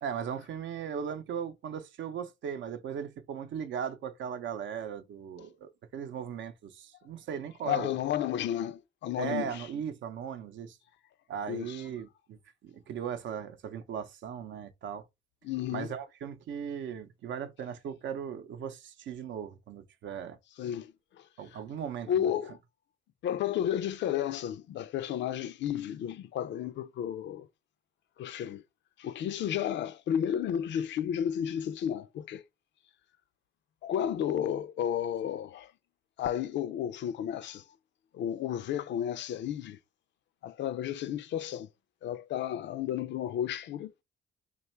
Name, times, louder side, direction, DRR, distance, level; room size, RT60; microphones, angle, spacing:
voice 1, 0.0-7.9 9.2-10.8 11.3-15.0 15.7-20.4 21.4-22.3, right 8 dB, 70° right, 0.6 m, -38 dB
voice 2, 7.7-9.7 11.5-11.8 15.4-15.9 20.6-20.9 22.1-22.6 23.2-27.5 28.2-28.6 29.0-32.4 33.8-35.7 36.2-37.6 38.1-39.8 40.4-41.7 42.0-43.9, left 10 dB, 65° left, 0.4 m, -32 dB
3.1 x 2.4 x 4.3 m
cardioid pair, 90°, 20 cm